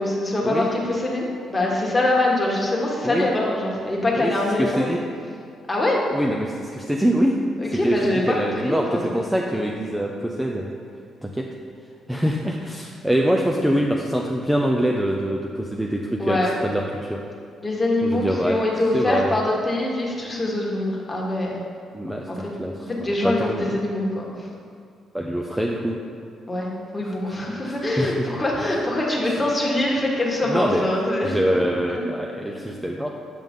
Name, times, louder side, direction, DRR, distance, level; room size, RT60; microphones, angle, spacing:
voice 1, 0.0-4.9 5.7-6.0 7.6-8.3 8.6-9.3 13.5-13.6 16.2-16.5 17.6-21.6 22.2-22.4 22.8-24.5 26.5-32.2, left 1 dB, 20° left, -3 dB, 1.5 m, -24 dB
voice 2, 4.2-5.0 6.1-7.4 7.8-10.7 11.2-11.5 12.1-17.2 18.0-18.6 18.9-19.4 21.9-22.7 23.0-23.8 25.1-26.0 27.0-27.3 27.7-28.3 29.3-29.4 30.5-30.8 31.2-33.2, equal, 5° right, 0 dB, 0.5 m, -24 dB
7.6 x 5.3 x 3.7 m, 2.3 s
cardioid pair, 90°, 0 cm